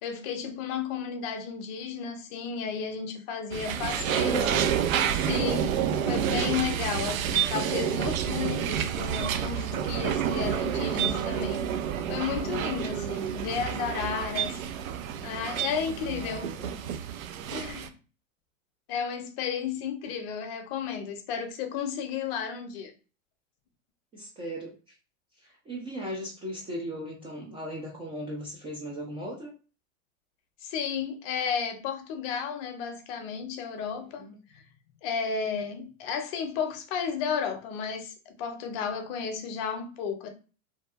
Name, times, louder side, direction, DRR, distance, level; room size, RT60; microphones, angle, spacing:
voice 1, 0.0-4.4 5.1-5.8 6.1-11.6 12.1-14.6 15.2-16.8 17.5-17.9 18.9-22.9 30.6-34.3 34.5-34.6 35.0-40.3, left 7 dB, 50° left, 0.6 m, -33 dB
sound 1, 3.5-17.9, right 9 dB, 80° right, 0.5 m, -29 dB
voice 2, 3.7-4.8 16.0-16.7 24.1-24.9 25.4-29.5 33.9-34.4, right 1 dB, 15° right, 0.3 m, -37 dB
2.7 x 2.4 x 2.4 m
hypercardioid pair, 120°, 40 cm